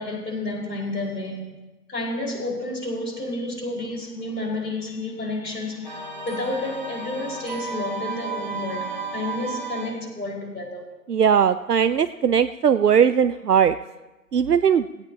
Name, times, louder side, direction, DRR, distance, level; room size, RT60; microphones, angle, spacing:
voice 1, 0.0-1.5 1.9-10.9, left 2 dB, 80° left, -1 dB, 5.3 m, -30 dB
sound 1, 5.8-10.1, right 4 dB, 30° right, 1.5 m, -33 dB
voice 2, 11.1-13.8 14.3-14.9, right 8 dB, 70° right, 11 dB, 0.6 m, -19 dB
17.0 x 16.5 x 2.9 m, 1.0 s
figure-of-eight pair, 165°, 48 cm